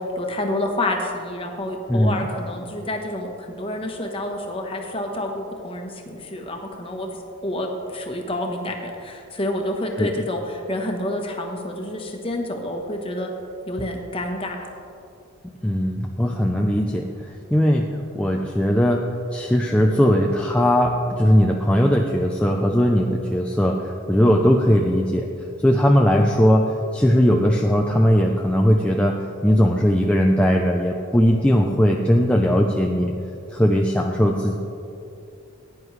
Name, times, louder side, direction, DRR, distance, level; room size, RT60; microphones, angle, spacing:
voice 1, 0.0-7.1 7.4-13.3 13.7-14.7, left 1 dB, 25° left, 2 dB, 1.1 m, -28 dB
voice 2, 1.9-2.3 10.0-10.1 15.6-17.9 18.1-25.3 25.6-33.2 33.5-34.5, equal, 5° left, 0 dB, 0.4 m, -19 dB
15.5 x 9.6 x 3.2 m, 2.7 s
head